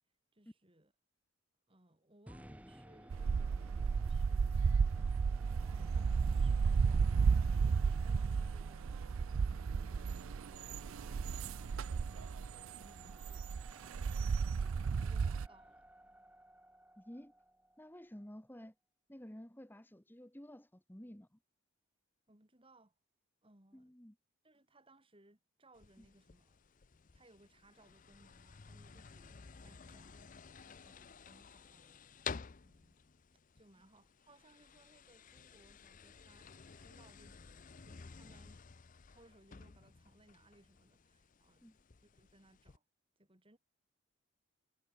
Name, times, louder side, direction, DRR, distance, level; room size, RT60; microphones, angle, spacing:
voice 1, 0.3-0.9 1.7-4.7 4.9-5.4 5.9-13.5 13.8-15.9 22.3-22.9 23.4-23.9 24.4-26.7 27.1-30.3 30.8-32.0 32.6-33.1 33.5-37.4 37.8-38.6 39.1-42.8 43.2-43.6, right 1 dB, 25° right, 3.0 m, -66 dB
sound 1, 2.3-18.4, right 1 dB, 5° right, 5.9 m, -59 dB
sound 2, 3.1-15.5, right 5 dB, 70° right, 0.4 m, -33 dB
voice 2, 17.0-17.3 17.8-18.7 19.1-21.4 23.7-24.1 26.0-26.1 41.6-41.8, equal, 10° left, 1.2 m, -52 dB
sound 3, 25.7-42.8, left 6 dB, 40° left, 0.6 m, -53 dB
head